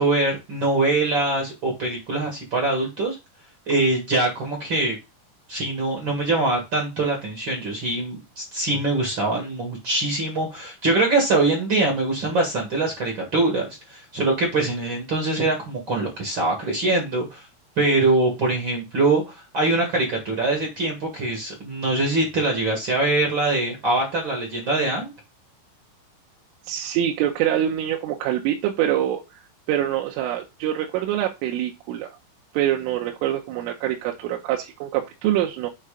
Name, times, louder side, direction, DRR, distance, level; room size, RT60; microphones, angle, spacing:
voice 1, 0.0-3.2 3.7-5.0 5.5-17.4 17.8-25.1, right 2 dB, 70° right, 1 dB, 1.1 m, -23 dB
voice 2, 26.6-29.4 29.7-32.1 32.5-35.7, right 11 dB, 90° right, 1 dB, 3.3 m, -25 dB
7.8 x 3.3 x 4.9 m, 0.25 s
omnidirectional pair, 5.6 m